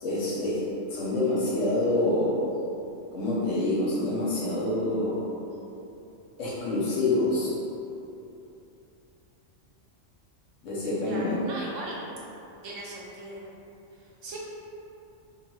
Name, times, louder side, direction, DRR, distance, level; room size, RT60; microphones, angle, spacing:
voice 1, 0.0-0.6 0.9-2.4 3.1-5.3 6.4-7.5 10.6-11.4, left 2 dB, 80° left, -7 dB, 1.1 m, -26 dB
voice 2, 11.0-12.0 12.6-13.4 13.9-14.4, right 1 dB, 80° right, -4 dB, 1.2 m, -38 dB
3.2 x 2.6 x 4.4 m, 2.8 s
omnidirectional pair, 1.3 m